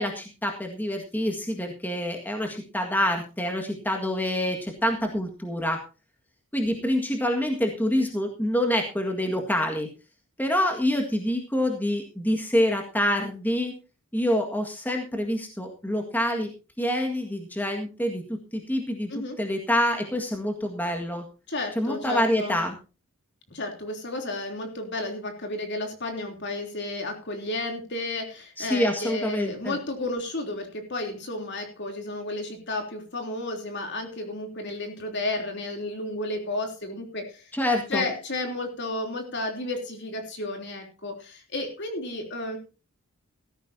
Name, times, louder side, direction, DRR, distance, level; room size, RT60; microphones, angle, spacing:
voice 1, 0.0-5.8 6.5-9.9 10.4-13.8 14.1-16.5 16.8-18.2 18.5-21.2 21.7-22.7 28.6-29.8 37.5-38.0, left 1 dB, 10° left, 3 dB, 1.8 m, -26 dB
voice 2, 21.5-22.6 23.5-37.5 37.9-42.6, left 2 dB, 50° left, 4 dB, 3.3 m, -32 dB
17.0 x 13.5 x 2.8 m, 0.31 s
head